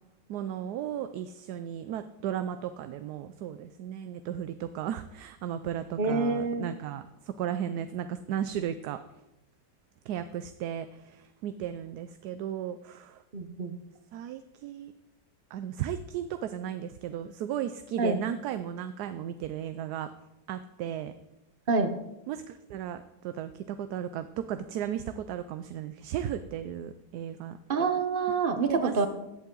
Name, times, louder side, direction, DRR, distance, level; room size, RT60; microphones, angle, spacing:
voice 1, 0.3-9.0 10.1-13.2 14.1-14.9 15.5-20.1 20.5-21.1 22.3-27.6 28.7-29.1, right 10 dB, 75° right, 11 dB, 1.1 m, -35 dB
voice 2, 6.0-6.6 13.3-13.7 18.0-18.2 21.7-21.9 27.7-29.1, right 4 dB, 40° right, 8 dB, 0.9 m, -27 dB
15.0 x 8.1 x 3.8 m, 0.92 s
omnidirectional pair, 1.8 m